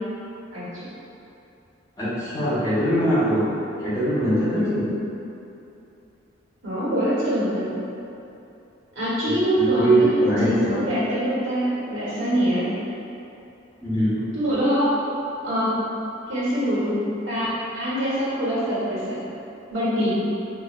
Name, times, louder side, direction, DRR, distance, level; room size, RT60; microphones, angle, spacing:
voice 1, 0.5-0.8 4.5-4.9 6.6-7.8 8.9-12.7 14.3-14.9 15.4-15.7 16.3-17.0 17.3-17.5 17.7-19.2 19.7-20.1, equal, 70° right, -10 dB, 1.3 m, -24 dB
voice 2, 2.0-3.5 3.8-5.0 9.2-10.8 13.8-14.4, right 1 dB, 20° left, -13 dB, 1.2 m, -22 dB
4.7 x 2.7 x 2.5 m, 2.8 s
head